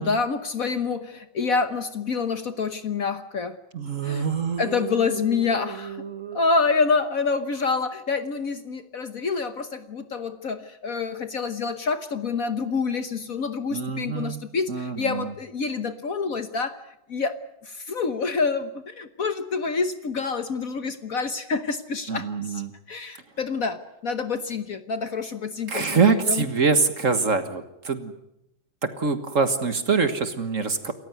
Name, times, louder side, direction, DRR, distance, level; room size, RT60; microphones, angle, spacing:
voice 1, 0.0-3.6 4.0-4.3 4.6-6.0 6.3-16.8 17.1-17.3 17.6-22.6 22.9-26.4, left 4 dB, 50° left, 10 dB, 1.3 m, -27 dB
voice 2, 3.7-6.4 13.7-14.4 14.7-15.3 22.1-22.7 25.7-28.1 28.8-30.9, right 5 dB, 45° right, 9 dB, 1.7 m, -25 dB
28.0 x 15.0 x 9.4 m, 0.85 s
omnidirectional pair, 2.1 m